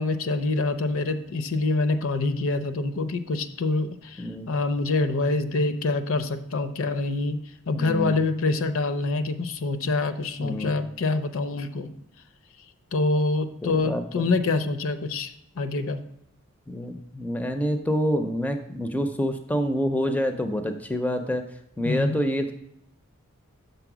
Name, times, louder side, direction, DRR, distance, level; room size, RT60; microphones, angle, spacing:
voice 1, 0.0-7.4 7.7-11.9 12.9-16.0 21.8-22.2, left 3 dB, 65° left, 11 dB, 0.6 m, -26 dB
voice 2, 4.2-4.5 7.8-8.2 10.4-10.7 13.6-14.3 16.7-21.4 21.8-22.5, equal, 5° left, 7 dB, 0.4 m, -27 dB
6.8 x 4.2 x 6.0 m, 0.76 s
head